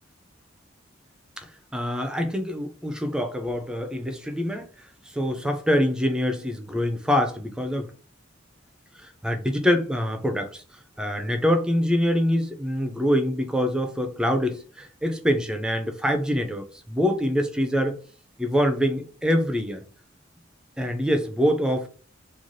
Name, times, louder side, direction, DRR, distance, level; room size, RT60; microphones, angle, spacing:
voice 1, 1.7-4.7 5.1-7.9 9.0-10.6 11.0-18.0 18.4-19.8 20.8-21.9, equal, 5° right, 0.3 m, -25 dB
3.1 x 2.3 x 2.6 m
head